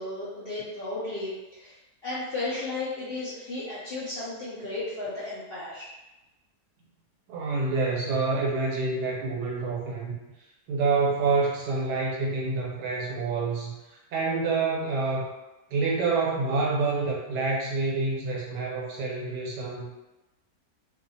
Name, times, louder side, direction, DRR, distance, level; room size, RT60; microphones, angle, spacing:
voice 1, 0.0-1.7 2.0-5.9, left 2 dB, 65° left, -9 dB, 0.6 m, -34 dB
voice 2, 7.3-10.2 10.7-15.3 15.7-19.9, right 4 dB, 90° right, -3 dB, 1.3 m, -27 dB
2.7 x 2.4 x 2.6 m, 1.0 s
omnidirectional pair, 1.7 m